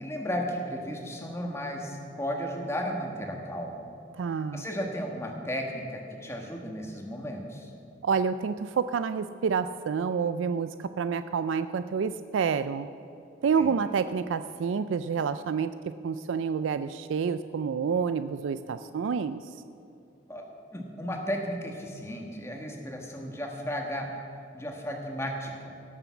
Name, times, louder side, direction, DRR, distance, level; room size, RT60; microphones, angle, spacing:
voice 1, 0.0-3.8 4.5-7.7 13.6-13.7 20.3-20.4 20.7-24.1 24.5-25.8, equal, 15° left, 1 dB, 1.5 m, -34 dB
voice 2, 4.2-4.7 8.0-12.9 13.4-15.7 16.0-19.5, right 6 dB, 85° right, 12 dB, 0.4 m, -28 dB
17.5 x 7.1 x 7.0 m, 2.7 s
head